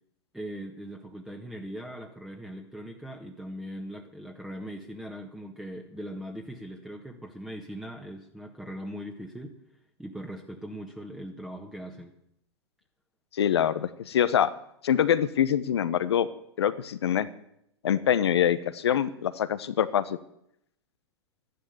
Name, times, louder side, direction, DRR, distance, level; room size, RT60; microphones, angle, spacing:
voice 1, 0.3-9.6 10.0-12.1, equal, 5° right, 1 dB, 1.7 m, -40 dB
voice 2, 13.3-14.5 14.8-16.3 16.6-17.3 17.8-20.2, left 9 dB, 70° left, 14 dB, 1.0 m, -24 dB
13.0 x 11.0 x 8.0 m, 0.77 s
hypercardioid pair, 100°, 14 cm